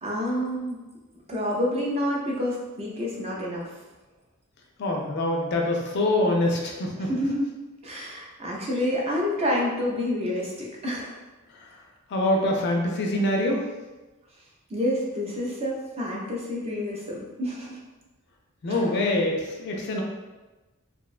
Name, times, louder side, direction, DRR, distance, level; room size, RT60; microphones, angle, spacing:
voice 1, 0.0-0.8 1.3-3.6 7.0-7.5 7.8-11.1 14.7-17.8 18.7-18.9, left 1 dB, 30° right, -3 dB, 0.4 m, -28 dB
voice 2, 4.8-7.1 12.1-13.6 18.6-20.0, left 1 dB, 50° left, 1 dB, 0.4 m, -24 dB
2.6 x 2.1 x 2.4 m, 1.1 s
head